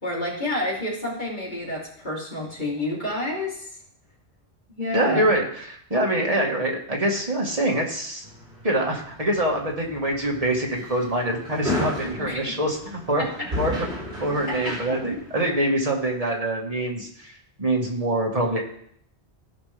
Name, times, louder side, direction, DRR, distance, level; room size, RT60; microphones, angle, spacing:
voice 1, 0.0-3.7 4.7-5.2 12.2-12.6 13.2-13.5 14.5-15.0, left 1 dB, 45° left, -5 dB, 3.3 m, -29 dB
voice 2, 4.9-8.2 8.6-13.2 13.6-13.9 14.2-18.6, right 1 dB, 35° right, -1 dB, 1.7 m, -25 dB
sound 1, 8.2-15.6, left 1 dB, 50° right, 4.1 m, -34 dB
16.0 x 5.3 x 3.4 m, 0.66 s
omnidirectional pair, 1.1 m